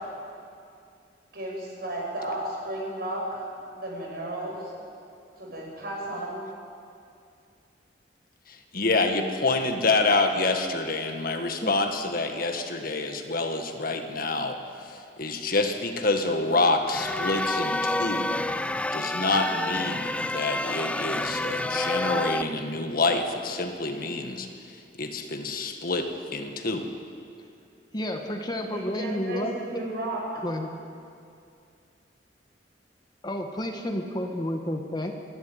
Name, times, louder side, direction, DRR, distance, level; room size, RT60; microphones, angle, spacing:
voice 1, 1.3-3.4 3.7-4.6 5.4-6.4 28.7-30.4, right 1 dB, 60° right, -2 dB, 6.8 m, -33 dB
voice 2, 8.7-14.6 15.2-18.4 18.9-24.5 25.0-26.9, left 3 dB, 55° left, 5 dB, 1.7 m, -27 dB
sound 1, 16.9-22.4, left 1 dB, 5° left, 0.4 m, -29 dB
voice 3, 27.9-29.8 30.4-30.7 33.2-35.1, left 1 dB, 25° left, 4 dB, 1.5 m, -31 dB
27.5 x 12.0 x 9.3 m, 2.5 s
head